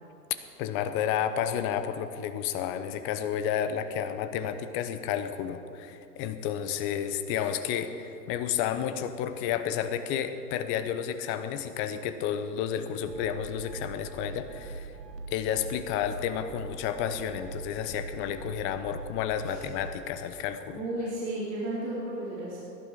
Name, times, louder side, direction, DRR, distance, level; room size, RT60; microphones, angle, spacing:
voice 1, 0.6-14.9 15.3-20.8, left 9 dB, 25° left, 10 dB, 0.8 m, -31 dB
sound 1, 13.0-19.9, right 4 dB, 85° right, 1.9 m, -42 dB
voice 2, 20.7-22.6, right 1 dB, 35° right, -7 dB, 3.5 m, -33 dB
18.0 x 11.5 x 4.7 m, 2.7 s
figure-of-eight pair, 115°, 49 cm